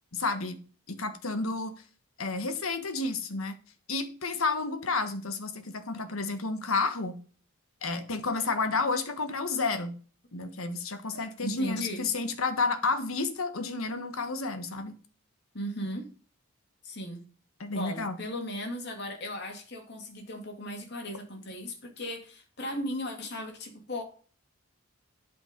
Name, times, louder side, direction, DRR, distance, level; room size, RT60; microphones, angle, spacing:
voice 1, 0.1-0.6 0.9-1.7 2.2-3.5 3.9-7.2 7.8-10.0 10.3-14.9 17.6-18.2, left 3 dB, 75° left, 1.4 m, -31 dB
voice 2, 11.1-12.1 15.5-16.1 16.8-17.2 17.7-24.0, left 1 dB, 50° left, 2.4 m, -37 dB
11.5 x 5.1 x 5.2 m
head